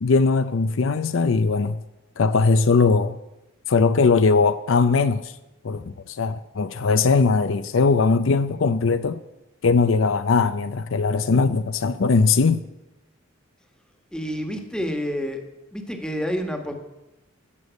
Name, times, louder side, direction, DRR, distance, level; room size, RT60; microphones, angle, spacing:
voice 1, 0.0-1.8 2.2-3.2 3.7-5.3 5.6-9.2 9.6-12.6, left 4 dB, 65° left, 0.5 m, -20 dB
voice 2, 14.1-15.4 15.7-16.7, equal, 5° left, 1.4 m, -28 dB
14.5 x 7.0 x 8.1 m
head